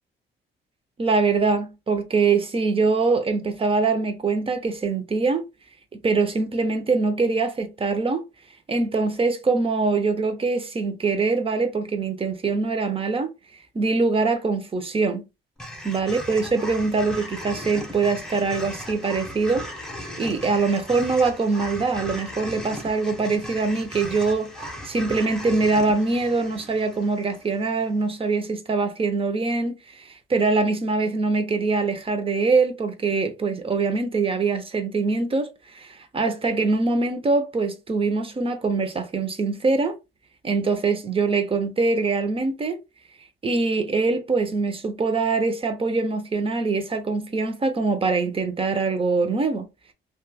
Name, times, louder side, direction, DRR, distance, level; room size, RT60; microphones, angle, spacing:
voice 1, 1.0-5.4 5.9-8.2 8.7-13.3 13.7-15.3 15.8-19.7 20.2-24.5 24.8-39.9 40.4-42.8 43.4-49.7, right 4 dB, 30° right, 0.7 m, -23 dB
sound 1, 15.6-27.9, equal, 5° left, 0.8 m, -37 dB
3.0 x 2.3 x 2.4 m
cardioid pair, 90°, 20 cm